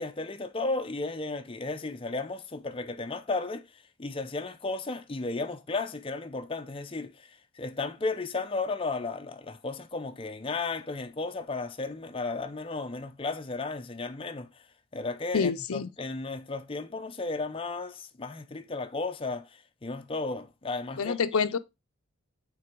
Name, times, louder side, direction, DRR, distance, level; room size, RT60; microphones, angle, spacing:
voice 1, 0.0-14.5 14.9-21.2, left 3 dB, 25° left, 0.5 m, -34 dB
voice 2, 15.3-15.9 21.0-21.6, left 5 dB, 85° left, 0.5 m, -27 dB
6.1 x 3.8 x 4.5 m
head